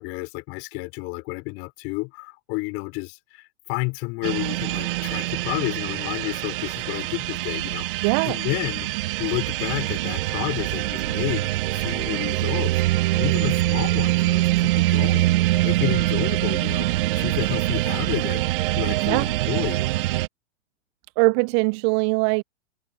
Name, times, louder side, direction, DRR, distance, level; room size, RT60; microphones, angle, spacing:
voice 1, 0.0-8.9 9.2-18.4 18.7-19.8, left 28 dB, 35° left, 3.9 m, -31 dB
sound 1, 4.2-20.3, right 17 dB, 45° right, 1.7 m, -24 dB
voice 2, 8.0-8.4 19.0-19.3 21.2-22.4, right 34 dB, 25° right, 0.4 m, -21 dB
figure-of-eight pair, 110°, 37 cm